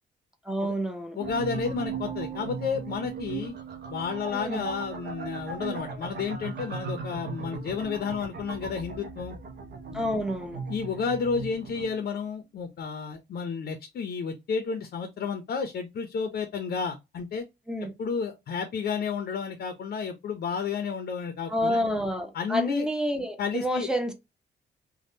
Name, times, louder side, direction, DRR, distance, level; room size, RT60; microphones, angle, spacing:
voice 1, 0.5-1.2 4.3-4.7 9.9-10.6 17.7-17.9 21.5-24.1, equal, 5° right, 0.6 m, -29 dB
voice 2, 1.1-3.5 3.9-9.4 9.9-10.1 10.7-17.4 18.0-21.8 22.3-22.9 23.4-23.9, left 6 dB, 60° left, 0.6 m, -31 dB
sound 1, 1.2-12.1, right 5 dB, 60° right, 0.7 m, -37 dB
3.5 x 2.2 x 2.7 m
wide cardioid pair, 165°, 19 cm